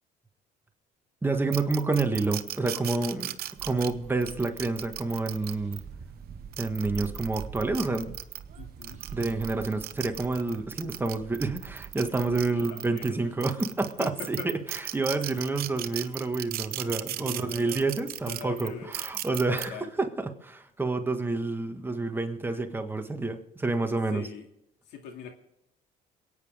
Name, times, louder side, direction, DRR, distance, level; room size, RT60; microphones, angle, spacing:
voice 1, 1.2-3.3 3.6-5.8 6.6-8.1 9.1-14.4 14.7-24.2, right 3 dB, 10° right, 5 dB, 1.5 m, -29 dB
sound 1, 1.5-5.8 6.4-8.4 8.8-13.1 13.4-19.7, right 13 dB, 65° right, 0.8 m, -36 dB
sound 2, 3.5-12.4, right 7 dB, 45° right, 1.5 m, -45 dB
voice 2, 8.6-9.1 12.5-13.3 14.0-14.5 17.2-17.8 18.2-18.9 19.5-19.9 24.1-24.5 24.9-25.3, left 5 dB, 90° left, 4 dB, 2.3 m, -42 dB
28.0 x 9.3 x 3.5 m, 0.84 s
cardioid pair, 110°, 17 cm